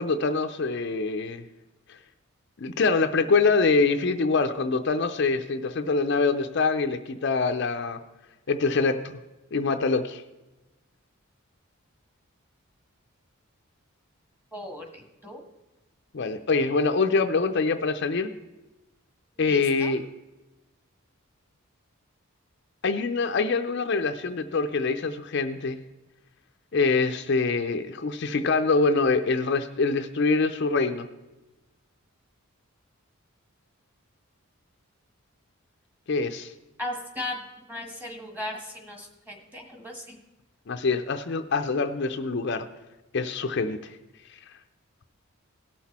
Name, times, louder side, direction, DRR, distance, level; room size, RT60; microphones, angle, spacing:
voice 1, 0.0-1.4 1.9-2.0 2.6-8.0 8.5-9.2 9.5-10.2 16.1-18.3 19.4-20.0 22.8-25.8 26.7-31.1 36.1-36.5 40.7-42.7 43.1-44.0, left 4 dB, 50° left, 7 dB, 0.5 m, -25 dB
voice 2, 14.5-15.4 19.4-20.0 36.8-37.4 37.7-40.2, left 1 dB, 10° right, 2 dB, 1.5 m, -37 dB
17.5 x 6.0 x 4.2 m, 1.1 s
head